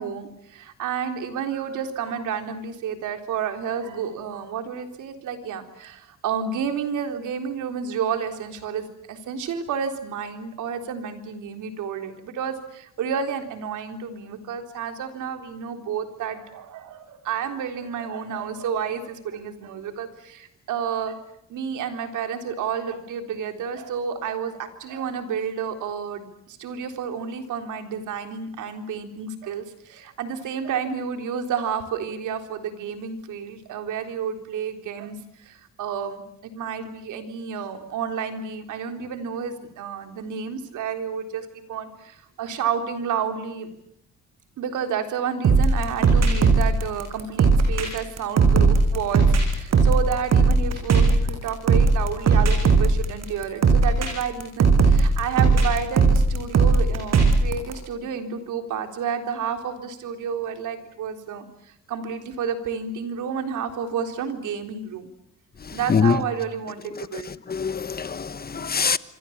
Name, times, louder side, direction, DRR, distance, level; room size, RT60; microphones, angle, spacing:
voice 1, 0.0-43.7 44.6-65.1 65.7-67.3, right 7 dB, 80° right, 3.8 m, -30 dB
sound 1, 45.4-57.7, right 4 dB, 60° right, 7.0 m, -18 dB
voice 2, 67.5-69.0, left 6 dB, 30° left, 1.3 m, -23 dB
27.0 x 25.0 x 7.4 m
cardioid pair, 90°, 30 cm